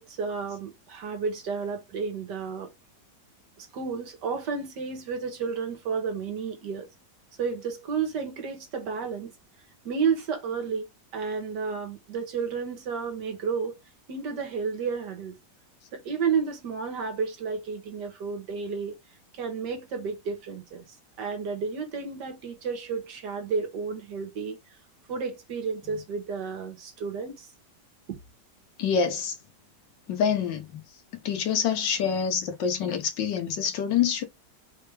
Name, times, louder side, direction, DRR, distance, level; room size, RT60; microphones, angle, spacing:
voice 1, 0.0-2.7 3.6-6.9 7.4-9.3 9.9-13.8 14.1-15.4 15.9-19.0 19.3-20.9 21.2-24.6 25.1-27.5 28.1-28.2, right 5 dB, 75° right, 1.8 m, -31 dB
voice 2, 28.8-29.4 30.1-30.8 31.2-34.2, left 7 dB, 90° left, 1.7 m, -26 dB
4.3 x 3.4 x 3.3 m
omnidirectional pair, 1.9 m